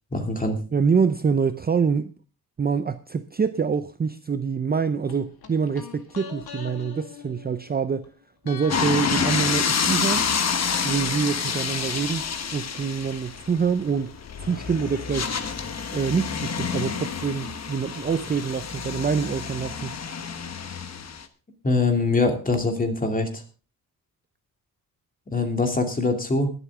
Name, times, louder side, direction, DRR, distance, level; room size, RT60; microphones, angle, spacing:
voice 1, 0.1-0.6 21.6-23.4 25.3-26.5, left 3 dB, 25° left, 2.7 m, -23 dB
voice 2, 0.7-2.1 2.6-8.1 8.5-10.3 10.8-12.2 12.5-14.1 14.4-15.3 15.9-20.0 20.3-20.4, right 6 dB, 25° right, 0.5 m, -25 dB
sound 1, 5.1-8.1 8.4-12.3 12.5-12.6, left 8 dB, 85° left, 2.1 m, -42 dB
sound 2, 8.7-21.2, left 6 dB, 45° left, 1.2 m, -28 dB
21.0 x 8.1 x 3.6 m
wide cardioid pair, 130°, 36 cm